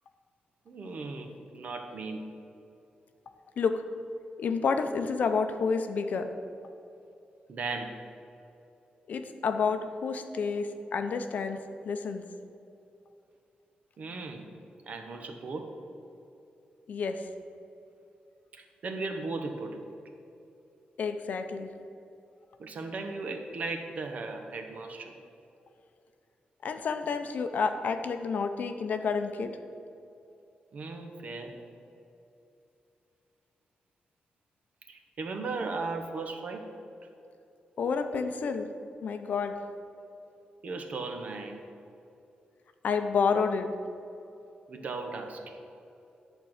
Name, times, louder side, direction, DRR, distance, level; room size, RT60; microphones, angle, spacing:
voice 1, 0.7-2.3 7.5-8.0 14.0-14.5 14.9-15.7 18.5-19.8 22.6-25.1 30.7-31.5 34.9-36.7 40.6-41.6 44.7-45.6, right 3 dB, 55° right, 5 dB, 1.1 m, -37 dB
voice 2, 4.4-6.3 9.1-11.6 11.8-12.3 16.9-17.2 21.0-21.7 26.6-29.5 37.8-38.7 39.0-39.6 42.8-43.7, left 5 dB, 65° left, 7 dB, 0.7 m, -29 dB
11.0 x 4.5 x 8.0 m, 2.7 s
wide cardioid pair, 145°, 3 cm